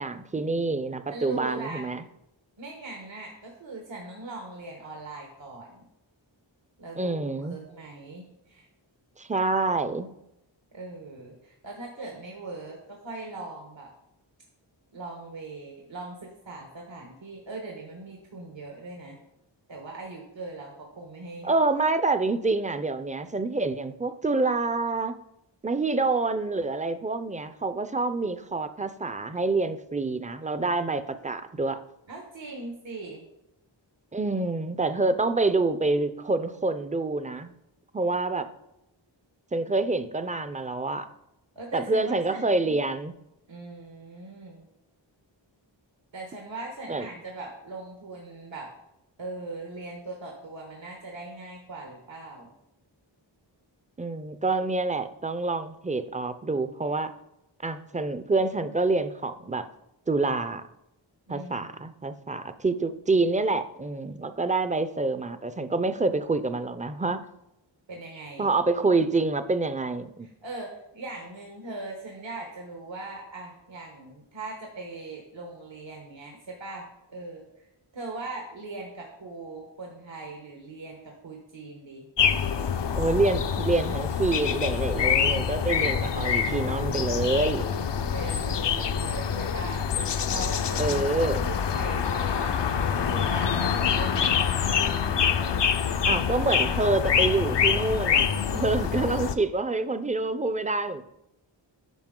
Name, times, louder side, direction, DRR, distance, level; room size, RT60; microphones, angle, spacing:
voice 1, 0.0-2.0 7.0-7.6 9.2-10.1 21.4-25.2 25.6-31.8 34.1-37.5 37.9-38.5 39.5-41.1 41.7-43.1 46.9-47.1 54.0-57.1 57.6-59.7 60.1-60.6 61.3-67.2 68.4-70.3 82.9-87.7 90.8-91.5 96.1-101.1, right 3 dB, 15° right, 11 dB, 0.4 m, -27 dB
voice 2, 1.1-1.9 2.6-5.8 6.8-8.7 10.7-13.9 14.9-19.2 19.7-21.5 32.1-33.3 41.5-42.8 43.5-44.7 46.1-48.7 49.2-52.5 61.3-61.7 67.9-68.5 70.2-77.7 77.9-82.1 88.1-89.8 90.3-91.1 91.4-94.6, right 2 dB, 75° right, 1 dB, 1.3 m, -40 dB
sound 1, 82.2-99.3, left 7 dB, 65° left, 0.6 m, -26 dB
9.1 x 5.5 x 3.7 m, 0.87 s
wide cardioid pair, 70°, 46 cm